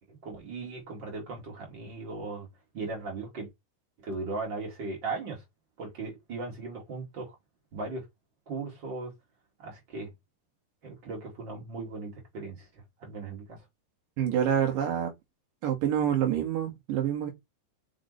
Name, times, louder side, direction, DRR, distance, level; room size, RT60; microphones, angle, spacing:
voice 1, 0.1-2.5 2.7-3.5 4.0-5.4 5.8-7.3 7.7-8.0 8.5-9.1 9.6-10.1 10.8-13.6, right 3 dB, 40° right, 1.6 m, -38 dB
voice 2, 14.2-15.1 15.6-17.3, right 9 dB, 60° right, 2.4 m, -27 dB
6.7 x 6.0 x 3.2 m
omnidirectional pair, 5.6 m